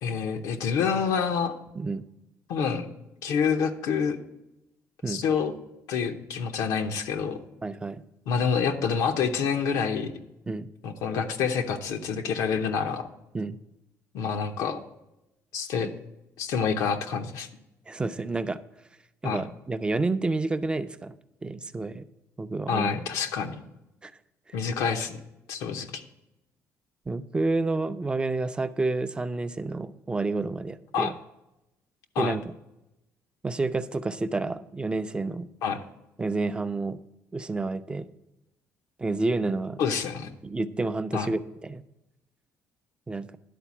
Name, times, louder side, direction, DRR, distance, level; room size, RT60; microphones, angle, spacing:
voice 1, 0.0-1.5 2.5-2.9 3.2-4.2 5.1-5.5 5.9-7.4 8.3-10.2 10.8-13.1 14.1-14.8 15.5-15.9 16.4-17.5 19.2-19.4 22.7-23.6 24.5-25.2 25.5-26.0 30.9-31.1 32.1-32.3 35.6-35.8 39.8-40.3 41.1-41.3, left 6 dB, 90° left, 5 dB, 0.8 m, -27 dB
voice 2, 7.6-8.0 10.5-10.7 13.3-13.6 15.8-15.9 17.9-18.6 19.2-21.1 21.4-22.0 22.4-22.9 24.0-24.1 27.1-31.1 32.2-32.5 33.4-35.5 36.2-37.0 37.3-38.1 39.0-39.8 40.4-41.8 43.1-43.3, right 3 dB, 15° right, 12 dB, 0.4 m, -29 dB
11.0 x 4.1 x 7.1 m, 0.91 s
cardioid pair, 115°, 6 cm